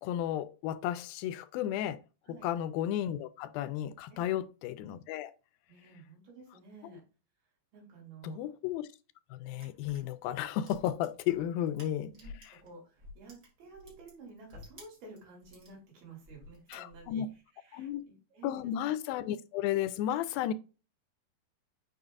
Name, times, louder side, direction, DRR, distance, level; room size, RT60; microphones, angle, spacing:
voice 1, 0.0-2.0 2.3-5.3 6.9-7.0 8.2-8.9 9.3-12.1 12.5-12.6 16.7-17.3 17.7-18.0 18.4-20.5, left 11 dB, 85° left, 2.3 m, -33 dB
voice 2, 5.7-7.0 7.7-8.4 12.0-17.2 17.5-18.7, right 3 dB, 80° right, 5.0 m, -52 dB
sound 1, 9.6-12.7 13.0-15.7 16.2-17.3, left 2 dB, 25° right, 3.0 m, -53 dB
7.9 x 5.6 x 2.5 m
omnidirectional pair, 4.2 m